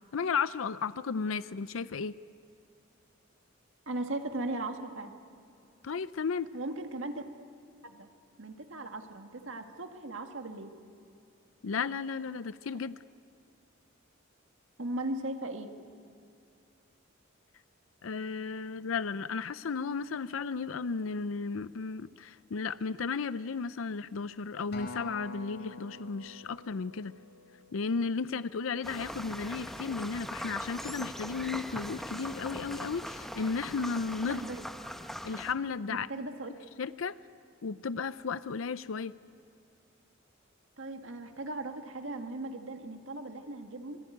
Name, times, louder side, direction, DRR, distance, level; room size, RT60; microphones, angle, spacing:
voice 1, 0.1-2.1 5.8-6.5 11.6-12.9 18.0-27.2 27.7-34.4 35.2-36.1 36.8-37.2 37.6-39.1, left 5 dB, 85° left, 14 dB, 0.5 m, -34 dB
voice 2, 3.9-5.1 6.5-7.2 7.8-8.1 8.4-10.7 14.8-15.8 34.2-34.6 35.9-36.5 40.8-44.0, right 2 dB, 70° right, 5 dB, 1.9 m, -38 dB
Acoustic guitar, 24.7-29.1 29.8-29.9, left 2 dB, 60° left, 4.6 m, -48 dB
sound 1, 28.8-35.5, equal, ahead, 1.1 m, -41 dB
26.0 x 20.5 x 9.3 m, 2.4 s
head